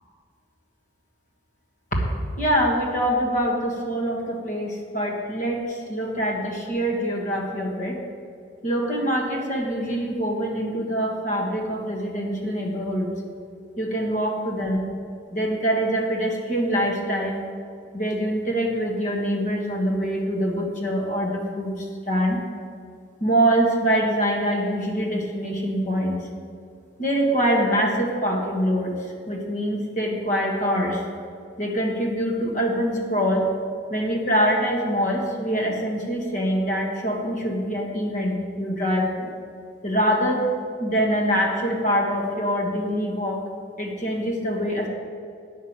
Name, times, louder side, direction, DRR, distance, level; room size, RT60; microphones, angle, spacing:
voice 1, 2.4-8.0 8.6-13.1 13.8-14.8 15.3-17.4 17.9-22.4 23.2-26.2 27.0-31.0 31.6-33.6 33.9-39.3 39.8-40.4 40.8-43.4 43.8-44.9, equal, 45° left, -1 dB, 1.5 m, -24 dB
9.4 x 5.8 x 7.8 m, 2.3 s
head